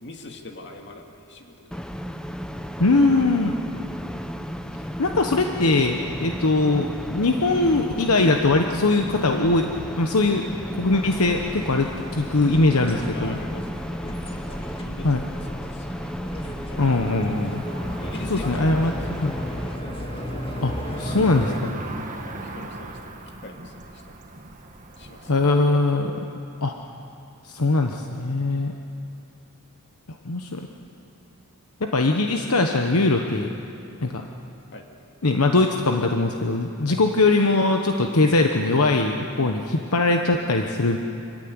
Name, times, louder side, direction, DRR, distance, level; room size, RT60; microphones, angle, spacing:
voice 1, 0.0-1.8 10.9-11.0 12.5-12.7 13.1-16.1 16.7-17.5 18.0-19.5 21.7-24.2 25.0-25.3 34.7-34.9 36.9-37.0 39.4-39.5, left 2 dB, 55° left, 3 dB, 2.3 m, -42 dB
sound 1, 1.7-19.8, equal, 5° left, 0.8 m, -34 dB
voice 2, 2.8-3.6 5.0-9.7 10.0-10.4 10.7-13.4 15.0-15.2 16.8-17.6 18.3-18.9 19.2-19.3 20.6-21.7 25.3-26.1 26.6-26.7 27.4-28.7 30.2-30.6 31.8-33.5 34.0-34.2 35.2-41.0, left 2 dB, 75° left, 4 dB, 1.1 m, -21 dB
sound 2, 11.1-21.6, equal, 25° left, 1.9 m, -35 dB
Cricket / Motor vehicle (road), 16.8-25.5, right 2 dB, 35° right, 1.6 m, -40 dB
25.5 x 15.0 x 9.7 m, 2.8 s
head